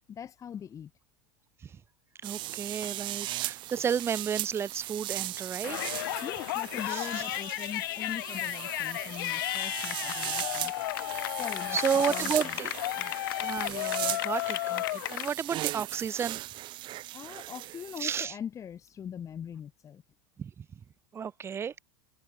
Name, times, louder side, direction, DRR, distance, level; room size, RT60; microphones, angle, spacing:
voice 1, 0.1-0.9 6.2-10.7 11.3-11.8 12.1-12.6 12.9-13.2 16.9-20.0, left 8 dB, 30° left, 6.2 m, -41 dB
voice 2, 2.2-5.9 6.9-7.1 11.1-11.3 11.7-12.7 13.0-16.4 18.0-18.3 20.4-20.7 21.1-21.7, right 7 dB, 20° right, 0.9 m, -32 dB
sound 1, 2.2-18.2, right 16 dB, 45° right, 2.1 m, -38 dB
Yell, 5.6-15.3, left 18 dB, 75° left, 1.0 m, -33 dB
supercardioid pair, 125°, 11 cm